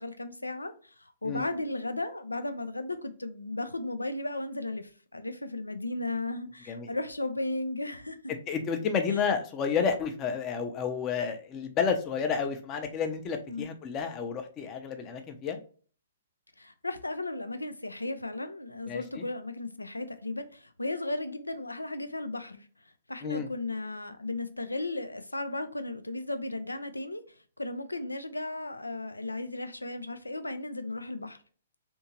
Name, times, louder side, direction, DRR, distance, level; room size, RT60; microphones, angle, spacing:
voice 1, 0.0-8.2 9.1-9.2 13.5-13.7 16.6-31.4, left 2 dB, 85° left, 0.5 m, -35 dB
voice 2, 8.5-15.6 18.9-19.2 23.2-23.5, left 6 dB, 25° left, 0.7 m, -31 dB
3.5 x 2.8 x 2.9 m
figure-of-eight pair, 120°, 0 cm